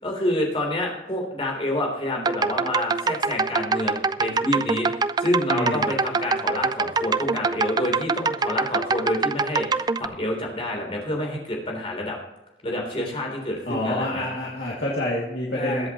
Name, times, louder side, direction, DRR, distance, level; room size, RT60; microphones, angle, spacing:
voice 1, 0.0-12.2 12.6-14.3 15.5-15.9, left 1 dB, 30° left, 0 dB, 3.6 m, -28 dB
sound 1, 2.2-10.1, right 4 dB, 25° right, 0.3 m, -24 dB
voice 2, 5.5-5.9 13.7-15.9, left 1 dB, 65° left, -5 dB, 2.6 m, -27 dB
22.0 x 8.1 x 3.1 m, 0.97 s
head